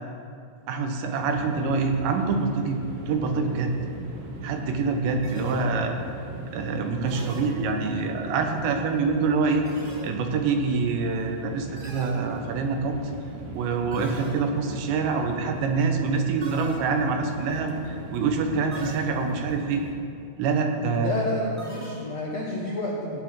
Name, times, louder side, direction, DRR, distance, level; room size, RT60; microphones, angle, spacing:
voice 1, 0.7-3.7 4.4-5.9 6.5-9.7 10.0-13.0 13.5-19.8 20.4-21.2, right 4 dB, 85° right, 4 dB, 3.3 m, -26 dB
sound 1, 1.2-20.0, right 3 dB, 70° right, 2.3 m, -39 dB
sound 2, 5.2-6.1 7.1-8.1 9.6-10.5 11.8-12.8 13.9-14.8 16.4-17.3 18.7-19.5 21.6-22.4, right 1 dB, 20° right, 1.4 m, -42 dB
voice 2, 20.8-23.2, left 1 dB, 70° left, -4 dB, 1.5 m, -30 dB
16.0 x 9.4 x 4.7 m, 2.5 s
omnidirectional pair, 4.9 m